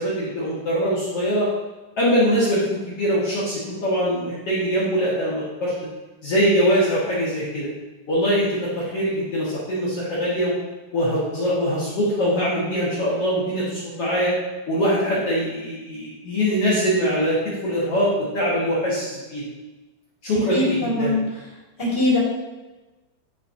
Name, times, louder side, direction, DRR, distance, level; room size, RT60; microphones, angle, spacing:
voice 1, 0.0-1.5 2.0-5.7 6.2-7.7 8.1-10.5 10.9-14.3 14.7-19.4 20.2-21.2, equal, 50° left, -8 dB, 1.9 m, -22 dB
voice 2, 20.5-21.2 21.8-22.2, left 2 dB, 20° left, -7 dB, 2.2 m, -21 dB
12.0 x 5.2 x 2.8 m, 1.1 s
omnidirectional pair, 4.7 m